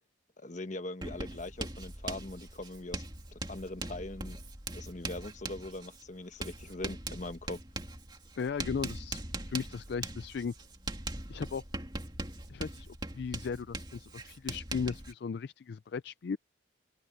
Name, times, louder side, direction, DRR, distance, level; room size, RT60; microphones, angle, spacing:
voice 1, 0.4-3.0 3.3-4.4 4.7-7.6, left 2 dB, 40° left, 1.2 m, -41 dB
Writing, 1.0-15.1, right 2 dB, 25° right, 2.5 m, -41 dB
voice 2, 8.4-9.2 9.4-10.5 11.3-11.6 12.5-16.4, left 5 dB, 60° left, 0.4 m, -36 dB
head